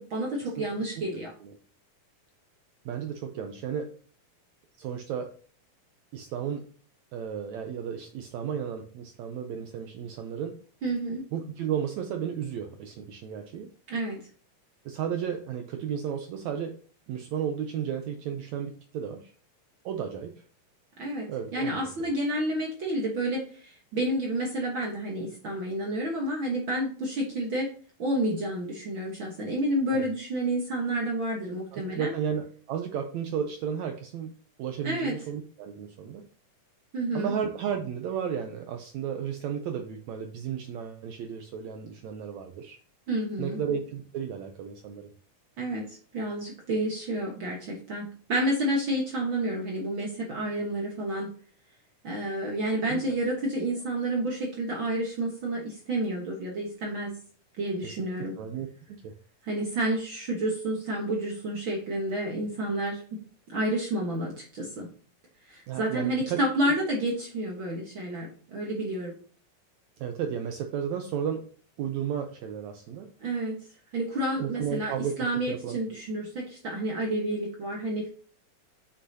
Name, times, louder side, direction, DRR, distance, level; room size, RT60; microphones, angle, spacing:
voice 1, 0.0-1.3 10.8-11.2 13.9-14.2 21.0-27.7 28.0-32.1 34.8-35.2 36.9-37.3 43.1-43.6 45.6-51.3 52.0-57.2 57.6-58.3 59.4-63.2 63.5-64.9 65.5-69.1 73.2-73.6 73.9-78.1, right 1 dB, 60° right, -1 dB, 1.3 m, -30 dB
voice 2, 2.8-3.9 4.8-5.3 6.1-6.7 7.1-10.6 11.3-13.7 14.8-16.8 17.1-19.3 19.8-20.4 21.3-22.1 29.9-30.1 31.7-34.3 34.6-36.2 37.1-42.8 43.4-45.1 52.9-53.0 53.6-53.7 57.8-58.1 58.4-58.7 59.0-59.2 65.7-66.4 66.6-66.8 70.0-71.5 71.8-73.1 74.4-76.0, right 8 dB, 80° right, 5 dB, 1.6 m, -33 dB
7.7 x 6.2 x 2.8 m, 0.43 s
omnidirectional pair, 4.0 m